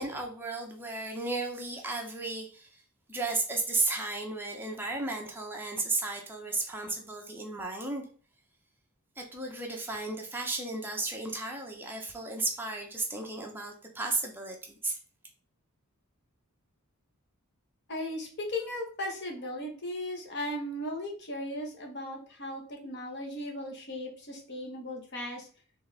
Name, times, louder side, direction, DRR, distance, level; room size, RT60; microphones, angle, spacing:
voice 1, 0.0-2.7 3.1-8.1 9.2-15.0, right 2 dB, 10° right, 1 dB, 0.8 m, -34 dB
voice 2, 17.9-25.5, left 1 dB, 50° left, 1 dB, 1.1 m, -37 dB
4.1 x 3.3 x 3.4 m, 0.41 s
head